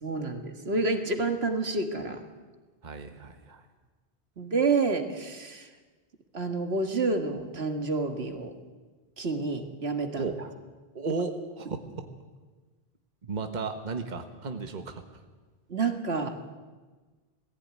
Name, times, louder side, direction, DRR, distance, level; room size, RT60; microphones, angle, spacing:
voice 1, 0.0-2.2 4.4-5.7 6.3-8.5 9.2-10.2 15.7-16.3, right 3 dB, 75° right, 6 dB, 2.0 m, -29 dB
voice 2, 2.8-3.6 10.2-10.4 10.9-12.1 13.2-15.0, right 4 dB, 45° right, 6 dB, 1.4 m, -34 dB
19.5 x 15.5 x 9.5 m, 1.3 s
omnidirectional pair, 1.1 m